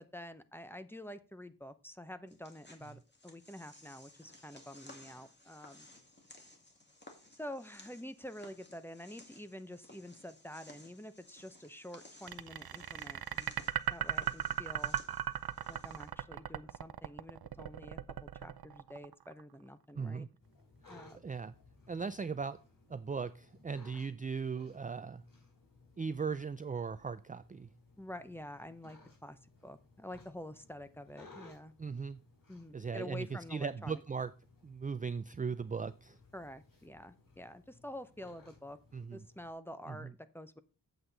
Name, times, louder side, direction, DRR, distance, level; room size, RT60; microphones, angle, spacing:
voice 1, 0.0-5.9 7.3-13.5 13.9-15.0 15.7-18.0 18.3-20.3 20.9-21.2 28.0-31.7 32.5-34.0 36.3-38.8 39.1-40.6, left 1 dB, 5° left, 11 dB, 0.7 m, -48 dB
sound 1, 2.3-16.1, left 1 dB, 25° left, 2.1 m, -58 dB
sound 2, 12.3-19.4, right 9 dB, 65° right, 0.6 m, -37 dB
voice 2, 20.0-20.3 21.1-21.5 21.9-22.6 22.9-25.2 26.0-27.7 31.8-32.2 32.7-34.3 34.6-36.2 38.9-39.2 39.9-40.1, right 5 dB, 20° right, 13 dB, 0.3 m, -38 dB
sound 3, 20.4-39.5, left 3 dB, 55° left, 4.0 m, -61 dB
8.0 x 7.9 x 3.9 m, 0.32 s
wide cardioid pair, 120°, 40 cm